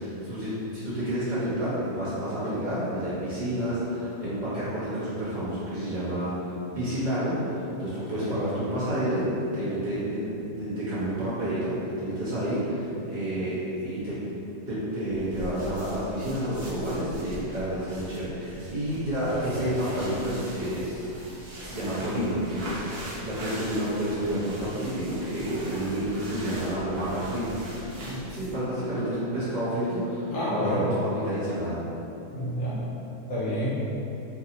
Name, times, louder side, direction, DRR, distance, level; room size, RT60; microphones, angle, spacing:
voice 1, 0.0-10.3 10.5-11.7 12.0-14.2 14.7-21.0 21.6-31.8, right 1 dB, 40° right, -11 dB, 0.6 m, -30 dB
sound 1, 15.1-28.7, equal, 70° right, 1.2 m, -41 dB
voice 2, 19.3-19.7 30.3-30.9 32.3-32.8 33.3-33.8, equal, 60° left, -9 dB, 0.7 m, -29 dB
3.0 x 2.7 x 2.8 m, 2.9 s
omnidirectional pair, 1.9 m